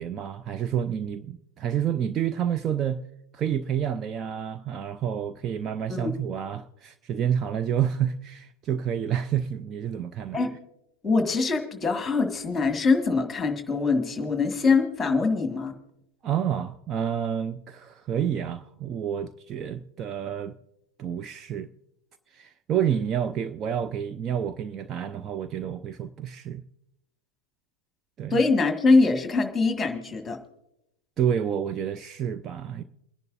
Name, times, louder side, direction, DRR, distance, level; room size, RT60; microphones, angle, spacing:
voice 1, 0.0-3.0 3.3-10.4 16.2-20.6 21.0-21.7 22.3-26.7 28.2-28.4 31.2-32.8, right 9 dB, 30° right, 0.5 m, -29 dB
voice 2, 11.0-15.7 28.3-30.4, left 4 dB, 10° left, 1.8 m, -23 dB
28.5 x 10.5 x 2.6 m
figure-of-eight pair, 90°, 0 cm